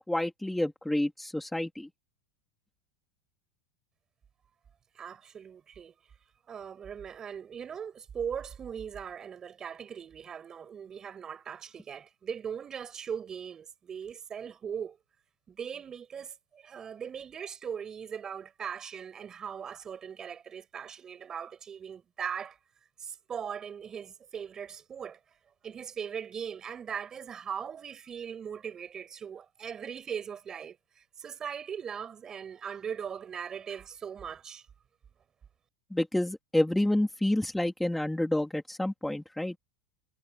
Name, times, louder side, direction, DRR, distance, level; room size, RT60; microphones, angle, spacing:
voice 1, 0.1-1.9 35.9-39.5, left 1 dB, 5° left, 3.0 m, -29 dB
voice 2, 4.9-6.0 6.5-15.0 15.5-22.6 23.0-25.2 25.6-34.6, right 7 dB, 25° right, 5.0 m, -39 dB
supercardioid pair, 130°, 2 cm